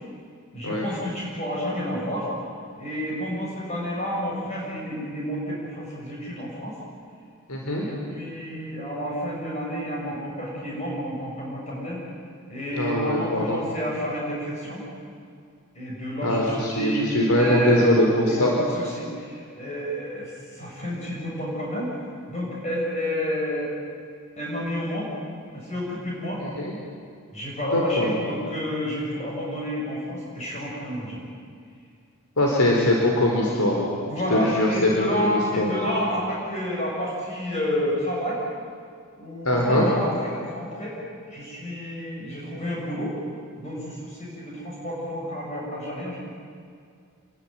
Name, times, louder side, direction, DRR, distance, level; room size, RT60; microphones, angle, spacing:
voice 1, 0.5-2.3 2.8-6.8 7.7-12.0 12.5-14.8 15.8-18.0 18.3-21.9 22.3-23.7 24.4-25.1 25.5-26.4 27.3-31.2 33.3-33.4 34.1-38.4 39.2-41.0 41.3-43.1 43.6-46.2, equal, 30° left, -4 dB, 7.0 m, -30 dB
voice 2, 7.5-7.8 12.7-13.6 16.2-18.5 26.4-26.7 27.7-28.1 32.4-33.8 34.3-35.7 39.4-39.9, left 1 dB, 85° left, -1 dB, 4.4 m, -22 dB
28.0 x 22.5 x 9.1 m, 2.3 s
head